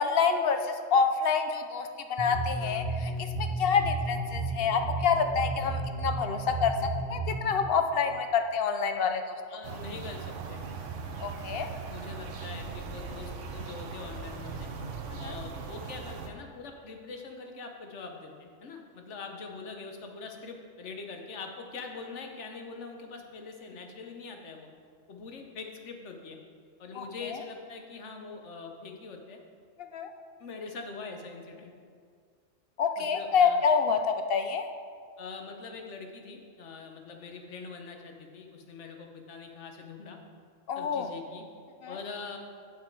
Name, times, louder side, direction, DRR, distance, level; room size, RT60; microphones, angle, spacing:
voice 1, 0.0-3.1 3.4-6.7 7.1-9.2 11.2-11.7 15.2-15.3 26.9-27.0 29.9-30.1 32.8-34.7 40.7-41.1 41.8-41.9, left 6 dB, 60° left, 7 dB, 0.8 m, -27 dB
sound 1, 2.2-7.5, right 2 dB, 35° right, 0.9 m, -33 dB
voice 2, 9.5-10.7 11.9-14.7 15.2-24.7 25.1-26.4 26.8-29.4 30.4-31.7 33.0-33.6 35.2-40.2 40.8-41.5 41.9-42.4, left 4 dB, 75° left, 3 dB, 1.2 m, -43 dB
sound 2, 9.6-16.3, right 5 dB, 85° right, 1.1 m, -39 dB
9.1 x 6.4 x 4.6 m, 2.1 s
omnidirectional pair, 1.2 m